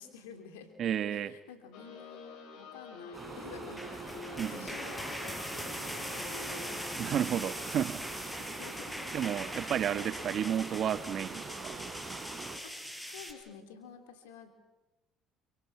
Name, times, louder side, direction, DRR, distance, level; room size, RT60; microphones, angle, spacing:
voice 1, 0.0-0.7 1.1-7.0 8.2-9.1 12.6-14.5, left 6 dB, 90° left, 6 dB, 3.5 m, -51 dB
voice 2, 0.8-1.3 4.4-4.7 7.0-8.3 9.1-11.8, right 9 dB, 55° right, 13 dB, 1.4 m, -32 dB
sound 1, 1.7-6.9, left 3 dB, 70° left, 6.5 m, -47 dB
sound 2, 3.1-12.6, right 4 dB, 25° right, 3.8 m, -44 dB
sound 3, 3.6-13.3, equal, 5° left, 5.8 m, -41 dB
28.5 x 26.0 x 6.2 m, 1.1 s
hypercardioid pair, 70°, 0 cm